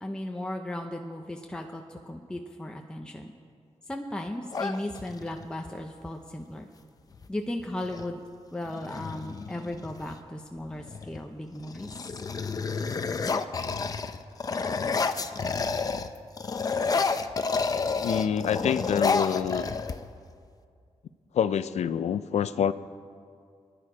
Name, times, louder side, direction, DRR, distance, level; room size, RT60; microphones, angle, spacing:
voice 1, 0.0-3.3 3.9-6.7 7.3-8.2 8.5-12.0, left 1 dB, 10° left, 2 dB, 0.8 m, -36 dB
sound 1, 4.5-5.5 7.1-7.3 7.6-8.1 8.7-10.2 10.8-11.2 11.6-16.1 16.4-20.3, left 4 dB, 35° left, 0.6 m, -30 dB
voice 2, 18.0-19.7 21.3-22.7, left 8 dB, 90° left, 13 dB, 0.6 m, -26 dB
27.0 x 10.5 x 5.0 m, 2.2 s
wide cardioid pair, 145°, 11 cm